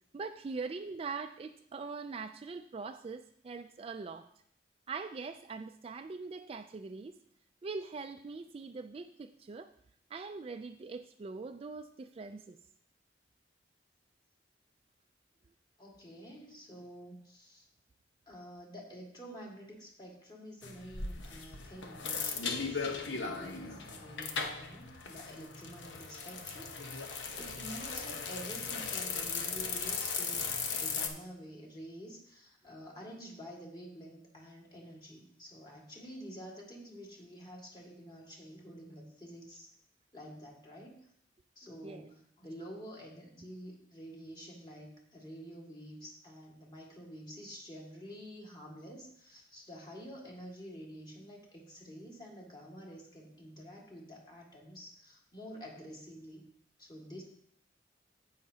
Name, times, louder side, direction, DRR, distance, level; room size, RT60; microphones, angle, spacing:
voice 1, 0.1-4.3 4.9-7.1 7.6-9.7 10.1-12.6 41.8-42.1, right 4 dB, 30° right, 8 dB, 0.3 m, -42 dB
voice 2, 15.8-17.7 18.3-39.7 40.1-40.9 41.6-56.5 56.8-57.2, equal, 25° left, -2 dB, 2.0 m, -49 dB
sound 1, 20.6-31.1, left 5 dB, 90° left, 1.0 m, -37 dB
17.0 x 5.7 x 2.8 m, 0.67 s
head